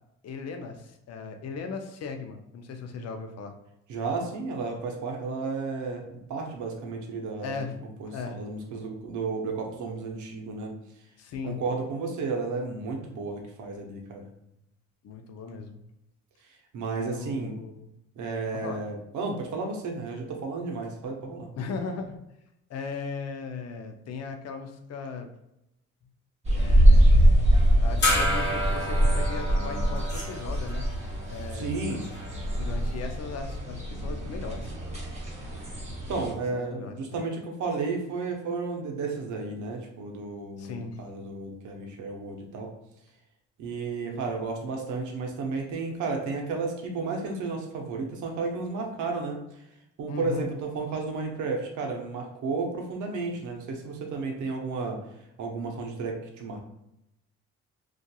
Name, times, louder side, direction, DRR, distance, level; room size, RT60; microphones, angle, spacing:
voice 1, 0.2-3.6 7.4-7.8 8.1-8.4 11.2-11.6 15.0-15.8 17.0-17.9 18.5-18.8 21.6-22.2 22.7-25.3 26.5-27.4 27.8-30.9 31.3-31.7 32.5-34.9 36.1-36.2 36.5-37.2 40.6-41.0 50.1-50.4, left 5 dB, 55° left, 5 dB, 0.5 m, -37 dB
voice 2, 3.9-6.0 6.3-7.7 8.0-10.7 11.5-14.3 16.7-17.6 18.2-21.5 31.5-32.0 36.1-42.7 43.6-49.4 50.0-55.0 55.4-56.6, right 4 dB, 75° right, 2 dB, 0.7 m, -32 dB
sound 1, 26.4-36.3, equal, 20° right, 0.9 m, -23 dB
sound 2, 28.0-32.9, left 1 dB, 35° left, 1.0 m, -31 dB
2.7 x 2.4 x 2.2 m, 0.84 s
cardioid pair, 90°, 30 cm